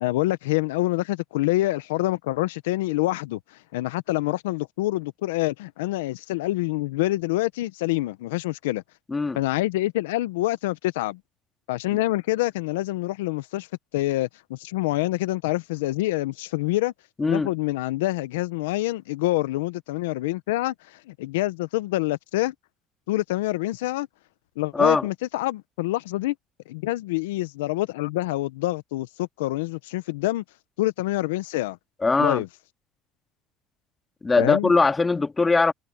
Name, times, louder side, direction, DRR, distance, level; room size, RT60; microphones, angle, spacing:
voice 1, 0.0-3.4 3.7-8.8 9.4-11.2 11.7-13.7 13.9-16.9 17.3-20.7 21.2-22.5 23.1-24.1 24.6-26.3 26.7-30.4 30.8-31.8 32.2-32.5 34.4-34.7, left 18 dB, 90° left, 0.7 m, -26 dB
voice 2, 9.1-9.4 11.9-12.0 17.2-17.5 24.7-25.1 32.0-32.4 34.2-35.7, left 3 dB, 25° left, 1.9 m, -21 dB
supercardioid pair, 75°, 0 cm